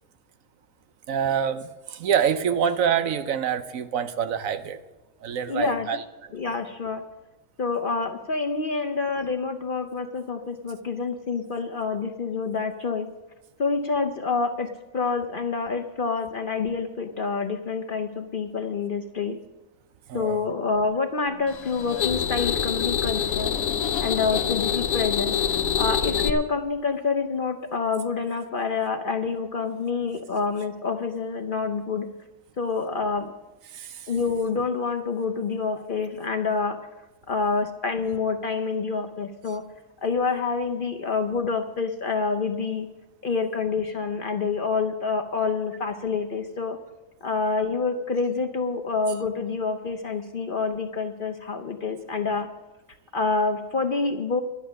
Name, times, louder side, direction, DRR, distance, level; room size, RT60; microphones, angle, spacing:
voice 1, 1.1-4.8 5.2-6.0 20.1-20.4 33.7-34.1, right 8 dB, 70° right, 12 dB, 1.1 m, -26 dB
voice 2, 5.5-6.0 6.3-7.0 7.6-13.1 13.6-14.7 14.9-19.4 20.1-23.5 24.0-25.4 25.8-32.1 32.6-33.3 34.1-36.8 37.3-39.6 40.0-42.9 43.2-46.8 47.2-52.5 53.1-54.4, left 4 dB, 50° left, 6 dB, 0.7 m, -27 dB
sound 1, 21.5-26.3, left 8 dB, 75° left, 1.1 m, -26 dB
11.0 x 10.0 x 6.3 m, 1.1 s
omnidirectional pair, 1.5 m